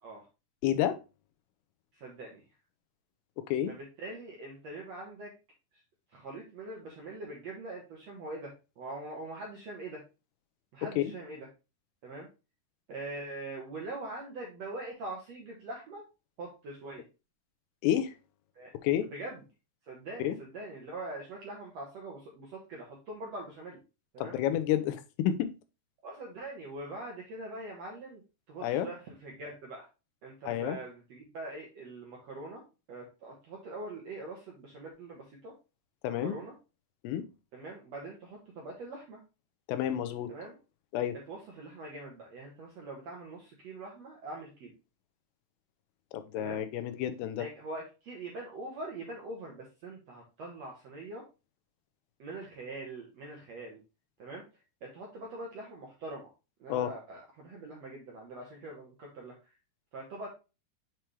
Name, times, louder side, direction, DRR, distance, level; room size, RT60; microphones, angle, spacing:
voice 1, 0.6-1.0 3.4-3.7 11.0-11.1 17.8-18.1 18.7-19.1 20.2-20.4 24.2-25.5 28.6-28.9 30.5-30.8 36.0-36.3 37.0-37.2 39.7-40.3 40.9-41.2 46.1-47.5 56.7-56.9, left 11 dB, 85° left, 2.8 m, -30 dB
voice 2, 1.9-2.4 3.7-5.3 6.1-10.0 10.7-11.5 12.0-12.3 12.9-16.0 16.4-17.0 18.5-18.7 19.1-19.4 19.8-23.8 24.1-24.4 26.0-28.2 28.5-29.9 30.2-32.6 32.9-35.5 36.2-36.5 37.5-39.2 40.3-40.5 41.3-44.7 46.3-46.6 47.4-51.2 52.2-53.8 54.2-54.4 54.8-56.3 56.6-59.3 59.9-60.3, right 2 dB, 65° right, 1.7 m, -43 dB
7.3 x 4.6 x 3.2 m
omnidirectional pair, 4.7 m